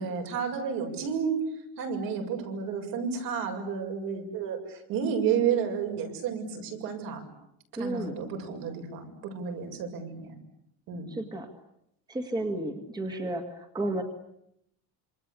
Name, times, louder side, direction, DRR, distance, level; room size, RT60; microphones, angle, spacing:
voice 1, 0.0-1.4 1.8-7.3 7.8-10.3 10.9-11.1, right 7 dB, 65° right, 3 dB, 7.0 m, -31 dB
voice 2, 7.8-8.2 11.1-11.5 12.1-14.0, right 1 dB, 10° right, 4 dB, 2.0 m, -32 dB
27.0 x 26.0 x 8.4 m, 0.77 s
cardioid pair, 170°, 36 cm